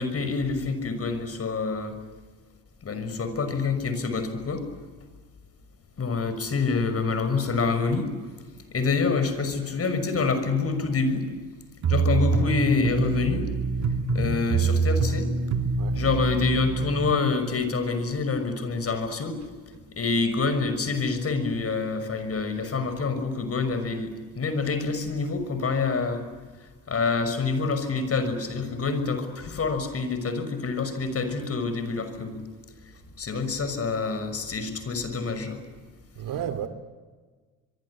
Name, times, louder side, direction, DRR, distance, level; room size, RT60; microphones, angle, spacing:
voice 1, 0.0-2.0 2.8-4.7 6.0-8.1 8.7-11.3 11.9-13.5 13.8-15.3 16.0-19.4 19.7-26.3 26.6-32.4 33.2-35.6, left 4 dB, 40° left, 6.0 m, -27 dB
sound 1, 11.8-17.1, right 4 dB, 50° right, 3.0 m, -25 dB
voice 2, 36.1-36.7, right 9 dB, 65° right, 2.8 m, -32 dB
25.0 x 23.5 x 10.0 m
supercardioid pair, 75°, 35 cm